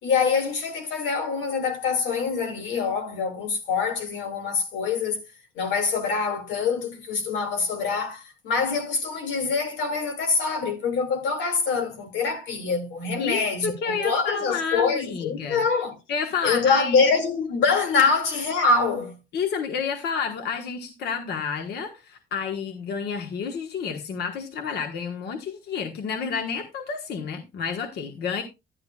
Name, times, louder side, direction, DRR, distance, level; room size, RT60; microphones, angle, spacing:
voice 1, 0.0-5.3 5.6-16.0 16.4-19.2, left 4 dB, 90° left, 2.3 m, -25 dB
voice 2, 13.2-15.6 16.1-17.1 18.0-18.1 19.3-28.4, left 6 dB, 60° left, 1.3 m, -30 dB
11.5 x 11.0 x 2.4 m
cardioid pair, 150°, 19 cm